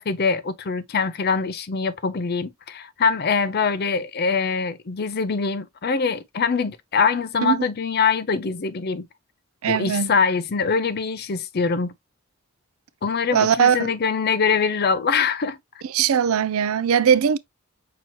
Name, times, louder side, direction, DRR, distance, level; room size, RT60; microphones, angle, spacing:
voice 1, 0.0-9.0 9.7-11.9 13.0-15.6, left 5 dB, 45° left, 0.5 m, -23 dB
voice 2, 9.6-10.1 13.3-13.9 15.9-17.4, right 8 dB, 80° right, 0.4 m, -20 dB
5.8 x 2.9 x 2.9 m
head